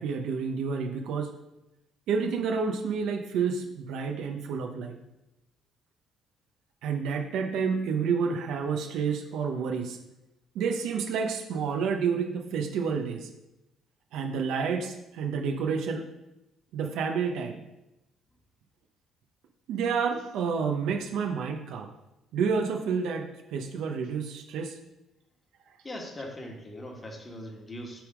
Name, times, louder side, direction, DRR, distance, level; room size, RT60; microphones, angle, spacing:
voice 1, 0.0-1.3 2.1-5.0 6.8-10.0 10.5-13.3 14.1-16.0 16.7-17.6 19.7-21.9 22.3-23.2 23.5-24.8, right 5 dB, 80° right, 3 dB, 0.8 m, -29 dB
voice 2, 25.8-28.0, left 1 dB, 25° left, 1 dB, 1.6 m, -40 dB
7.6 x 3.5 x 5.0 m, 0.93 s
cardioid pair, 90°, 0 cm